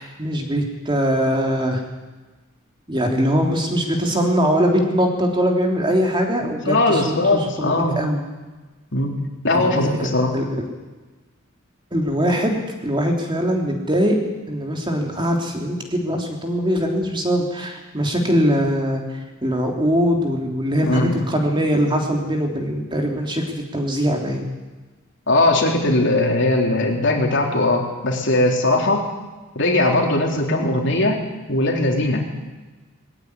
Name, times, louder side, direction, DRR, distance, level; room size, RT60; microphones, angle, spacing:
voice 1, 0.0-1.8 2.9-8.2 9.5-10.6 11.9-14.2 14.5-19.0 19.4-24.4, equal, 25° right, 1 dB, 3.3 m, -22 dB
voice 2, 6.7-8.0 8.9-9.2 9.4-10.3 20.9-21.2 25.3-29.0 29.6-31.2 31.5-32.2, left 2 dB, 65° left, 1 dB, 3.7 m, -19 dB
21.0 x 15.0 x 9.7 m, 1.2 s
head